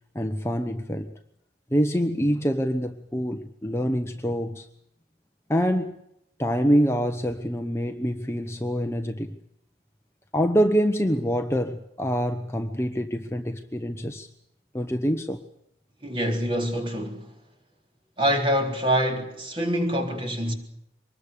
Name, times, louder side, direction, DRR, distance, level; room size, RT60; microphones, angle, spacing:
voice 1, 0.1-1.1 1.7-4.7 5.5-6.0 6.4-9.4 10.3-14.3 14.7-15.4, equal, 15° left, 1.1 m, -25 dB
voice 2, 16.0-17.3 18.2-20.5, equal, 30° right, 3.8 m, -25 dB
24.5 x 21.0 x 6.9 m
head